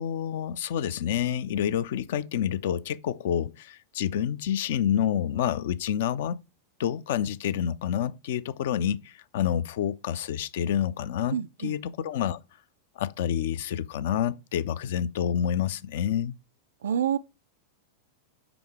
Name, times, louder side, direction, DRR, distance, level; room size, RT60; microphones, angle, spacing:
voice 1, 0.0-6.4 6.8-12.4 13.0-16.3, left 9 dB, 55° left, 0.4 m, -28 dB
voice 2, 11.3-11.7 16.8-17.2, right 9 dB, 65° right, 0.3 m, -27 dB
5.2 x 4.9 x 4.7 m
figure-of-eight pair, 90°, 0 cm